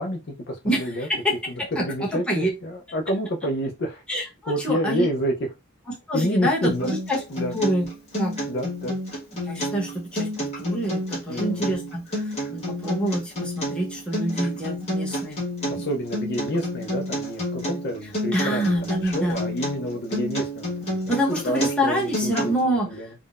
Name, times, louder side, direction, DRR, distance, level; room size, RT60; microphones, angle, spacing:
voice 1, 0.0-1.1 1.5-4.0 4.5-5.5 6.1-7.0 7.3-7.5 8.5-9.0 11.3-11.8 15.7-21.0 21.4-23.1, equal, 50° left, 4 dB, 0.5 m, -29 dB
voice 2, 4.1-5.1 6.1-7.2 7.5-7.9 8.2-8.4 9.3-10.3 10.6-12.0 12.5-15.4 15.8-15.9 18.3-19.4 21.1-22.9, equal, 5° left, -3 dB, 0.9 m, -26 dB
Acoustic guitar, 6.6-22.6, equal, 30° left, 1.3 m, -30 dB
3.6 x 2.1 x 2.4 m, 0.25 s
head